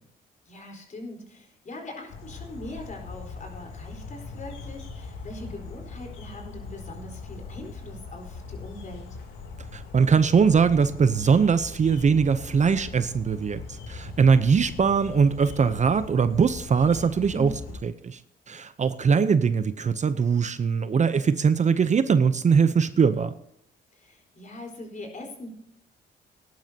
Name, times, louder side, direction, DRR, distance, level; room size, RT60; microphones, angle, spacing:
voice 1, 0.5-9.1 17.3-17.8 23.9-25.5, left 1 dB, 40° left, 2 dB, 4.3 m, -41 dB
sound 1, 2.1-17.8, left 4 dB, 85° left, 3.1 m, -40 dB
voice 2, 9.7-17.5 17.8-18.2 18.5-23.3, right 6 dB, 35° right, 12 dB, 0.7 m, -21 dB
18.5 x 11.0 x 2.9 m, 0.72 s
cardioid pair, 90°, 20 cm